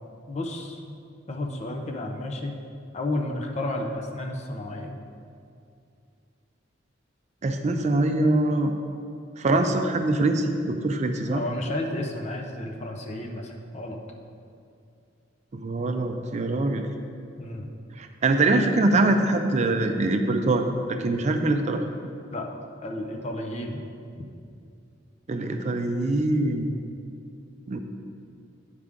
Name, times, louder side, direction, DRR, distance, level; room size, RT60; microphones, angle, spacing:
voice 1, 0.3-1.0 1.3-2.5 2.9-5.0 11.3-14.0 17.4-17.7 22.3-22.5 22.8-23.8 24.2-24.3 26.7-26.9, left 1 dB, 35° left, 2 dB, 0.7 m, -32 dB
voice 2, 7.4-8.8 9.4-11.4 15.5-16.9 18.0-21.8 25.3-26.7 27.7-27.8, right 2 dB, 40° right, 6 dB, 0.4 m, -23 dB
9.5 x 4.9 x 3.6 m, 2.4 s
head